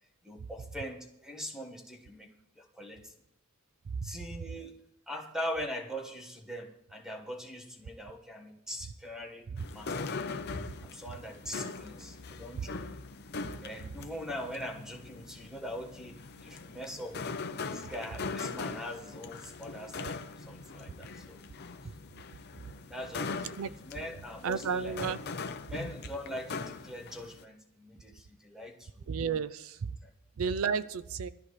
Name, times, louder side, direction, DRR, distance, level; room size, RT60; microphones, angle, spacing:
voice 1, 0.2-3.1 4.0-10.2 10.8-12.8 13.6-17.2 17.7-21.4 22.9-25.0 25.7-29.1 29.4-29.5 30.0-30.1, equal, 5° right, 2 dB, 1.5 m, -42 dB
sound 1, 9.6-27.4, left 4 dB, 50° left, 0.7 m, -41 dB
voice 2, 24.4-25.2 29.1-29.7 30.4-31.3, right 6 dB, 75° right, 14 dB, 0.5 m, -31 dB
19.5 x 13.0 x 3.2 m, 0.81 s
head